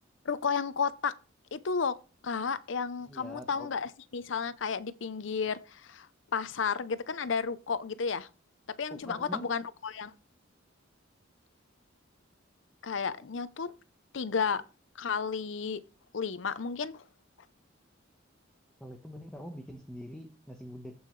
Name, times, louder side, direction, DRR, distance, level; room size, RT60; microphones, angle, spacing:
voice 1, 0.2-1.1 1.5-2.0 2.2-6.1 6.3-8.3 8.8-10.1 12.8-13.7 14.1-14.6 15.0-15.8 16.1-17.0, left 5 dB, 75° left, 0.6 m, -32 dB
voice 2, 3.1-3.7 8.9-9.5 18.8-20.9, equal, 5° left, 1.1 m, -44 dB
14.5 x 5.5 x 3.2 m
head